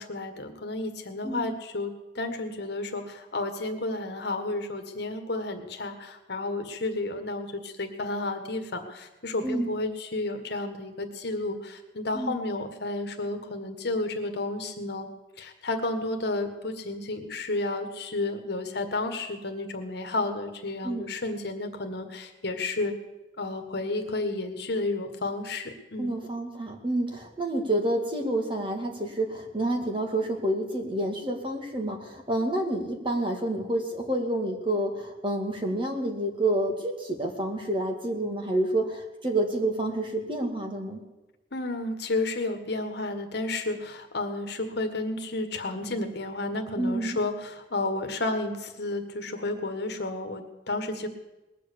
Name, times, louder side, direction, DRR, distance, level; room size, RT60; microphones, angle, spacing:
voice 1, 0.0-15.1 15.4-22.9 23.4-26.1 41.5-51.1, left 2 dB, 65° left, 6 dB, 1.7 m, -32 dB
voice 2, 26.0-41.0 46.8-47.2, right 1 dB, 30° right, 2 dB, 2.2 m, -28 dB
20.0 x 7.7 x 8.5 m, 1.0 s
head